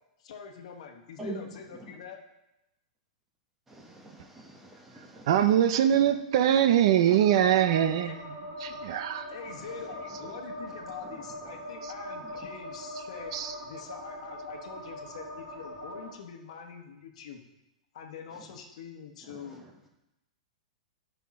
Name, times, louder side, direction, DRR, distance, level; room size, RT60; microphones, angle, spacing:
voice 1, 0.2-2.2 8.0-8.1 9.3-13.3 13.6-17.4 17.9-19.6, left 7 dB, 60° left, 4 dB, 1.2 m, -44 dB
voice 2, 1.2-2.0 3.7-5.3 6.0-6.2 6.6-6.8 7.1-7.2 9.5-11.7 12.2-12.5 18.3-18.6 19.2-19.7, right 1 dB, 5° right, 0 dB, 1.0 m, -46 dB
voice 3, 4.9-9.3 10.0-10.2 11.8-11.9 13.0-13.6, right 10 dB, 45° right, 10 dB, 0.5 m, -24 dB
sound 1, 7.2-16.1, equal, 75° right, 2.7 m, -42 dB
11.0 x 5.7 x 4.2 m, 0.93 s
supercardioid pair, 170°, 4 cm